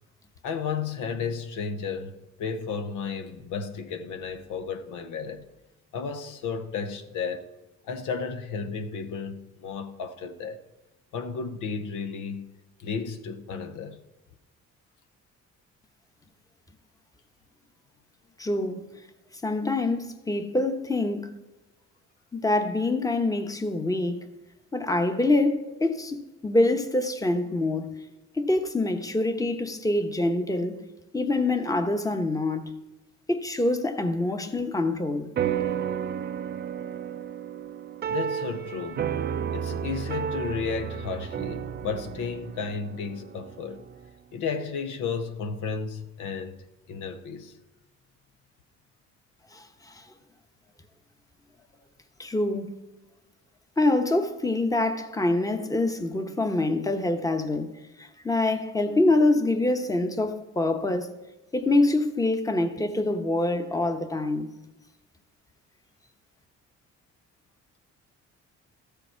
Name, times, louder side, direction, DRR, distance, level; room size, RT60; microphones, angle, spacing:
voice 1, 0.4-5.4 5.9-7.5 7.9-10.6 11.1-12.5 12.8-14.0 38.1-39.1 39.5-43.8 44.3-46.6 46.9-47.5, left 5 dB, 85° left, 0.8 m, -33 dB
voice 2, 18.4-18.8 19.4-21.3 22.4-24.2 24.7-27.9 28.4-30.8 31.1-32.7 33.3-35.3 49.5-50.0 52.2-52.7 53.8-57.7 58.0-61.1 61.5-64.5, left 2 dB, 10° left, 1.0 m, -25 dB
sound 1, 35.4-44.1, right 8 dB, 35° right, 0.4 m, -32 dB
13.0 x 7.0 x 4.5 m
cardioid pair, 90°, 30 cm